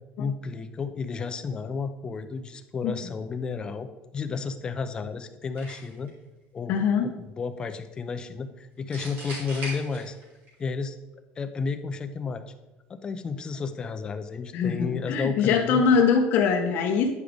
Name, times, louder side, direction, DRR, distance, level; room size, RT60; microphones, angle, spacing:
voice 1, 0.2-6.1 6.5-10.2 10.6-11.0 11.4-12.5 12.9-15.8, left 5 dB, 20° left, 9 dB, 0.4 m, -32 dB
sound 1, 5.6-6.1 8.9-10.5, right 1 dB, 45° right, 2.7 m, -38 dB
voice 2, 6.7-7.1 14.5-17.1, left 6 dB, 50° left, 4 dB, 0.9 m, -22 dB
9.4 x 5.0 x 3.4 m, 1.1 s
cardioid pair, 160°, 4 cm